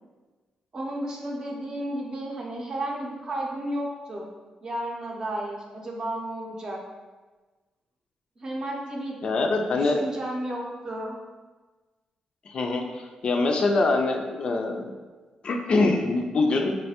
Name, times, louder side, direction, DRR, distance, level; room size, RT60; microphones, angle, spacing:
voice 1, 0.7-4.3 4.6-6.8 8.4-9.2 9.7-11.2, right 1 dB, 35° right, -1 dB, 0.6 m, -33 dB
voice 2, 9.2-10.1 12.5-14.9 15.4-16.7, left 3 dB, 50° left, 3 dB, 0.3 m, -24 dB
3.9 x 2.1 x 2.8 m, 1.3 s
cardioid pair, 110°, 2 cm